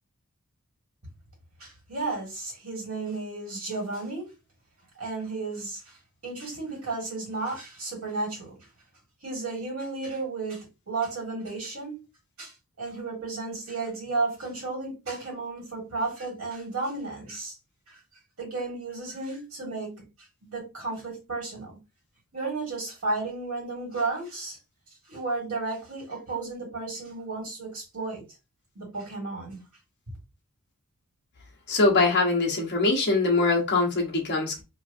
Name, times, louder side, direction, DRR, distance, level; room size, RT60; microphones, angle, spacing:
voice 1, 1.6-4.3 5.0-6.0 6.2-8.6 9.2-12.0 12.4-17.5 17.9-18.0 18.4-20.0 20.4-21.7 22.3-24.6 25.1-28.2 28.8-29.6, right 3 dB, 75° right, 1.9 m, -33 dB
voice 2, 31.7-34.6, left 3 dB, 50° left, 0.9 m, -23 dB
3.0 x 2.4 x 2.6 m
head